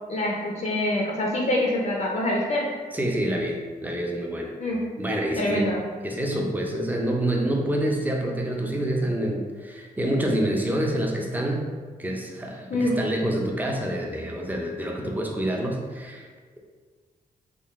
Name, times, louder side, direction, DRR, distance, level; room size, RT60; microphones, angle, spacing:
voice 1, 0.1-2.7 4.6-4.8 5.4-5.8 12.7-13.0, left 1 dB, 45° left, -2 dB, 0.5 m, -25 dB
voice 2, 2.9-4.5 5.0-5.7 6.0-11.6 12.0-16.3, right 1 dB, 10° right, 0 dB, 0.5 m, -27 dB
3.7 x 2.3 x 3.5 m, 1.5 s
wide cardioid pair, 115°, 16 cm